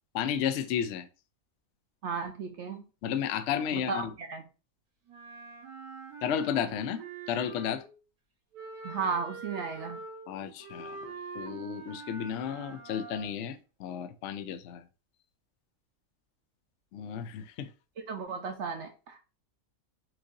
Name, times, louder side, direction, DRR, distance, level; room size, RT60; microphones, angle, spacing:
voice 1, 0.1-1.1 3.0-4.1 6.2-7.0 7.3-7.8 10.3-14.8 16.9-17.7, left 8 dB, 70° left, 0.7 m, -33 dB
voice 2, 2.0-2.8 3.7-4.4 8.8-10.0 18.1-19.2, right 5 dB, 60° right, 0.8 m, -34 dB
Wind instrument woodwind instrument, 5.1-8.0 8.5-13.4, right 4 dB, 80° right, 1.5 m, -44 dB
7.6 x 2.7 x 2.5 m
omnidirectional pair, 1.6 m